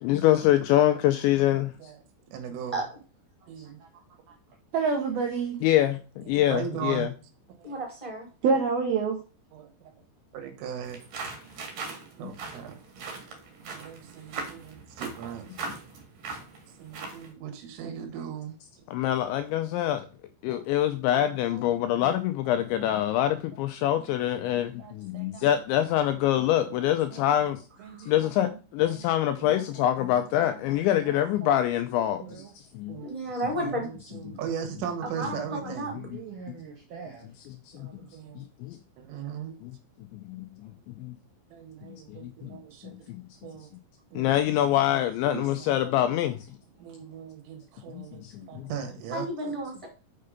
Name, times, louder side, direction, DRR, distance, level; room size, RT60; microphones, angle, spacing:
voice 1, 0.0-1.7 5.6-7.1 12.2-12.3 18.9-20.1 20.4-27.6 28.1-32.2 32.7-33.0 34.3-34.4 36.1-36.2 37.5-38.0 38.4-38.8 39.6-39.7 40.1-41.2 41.8-42.6 43.1-43.2 44.2-46.5 47.9-48.7, left 12 dB, 85° left, 2.7 m, -25 dB
voice 2, 1.5-2.0 2.3-2.8 3.5-3.8 6.2-7.1 7.6-7.8 9.5-9.7 10.3-11.0 12.2-12.8 13.7-15.5 16.8-18.6 20.5-20.6 21.5-21.7 22.5-23.0 23.9-24.1 24.4-25.5 26.1-26.2 26.7-27.4 27.8-29.1 29.4-31.6 32.3-32.4 32.9-33.1 33.6-36.0 37.8-38.5 39.0-39.5 41.5-42.9 43.4-43.7 44.1-45.0 45.5-46.2 46.8-49.6, right 8 dB, 85° right, 4.2 m, -40 dB
voice 3, 4.7-5.6 8.4-9.2 36.0-37.2, right 5 dB, 70° right, 2.4 m, -27 dB
voice 4, 7.6-8.3 27.9-28.1 33.0-33.9 35.0-35.9 49.1-49.9, right 1 dB, 5° right, 3.7 m, -32 dB
sound 1, 10.8-17.3, right 4 dB, 50° right, 3.2 m, -40 dB
6.7 x 6.5 x 5.1 m
omnidirectional pair, 5.7 m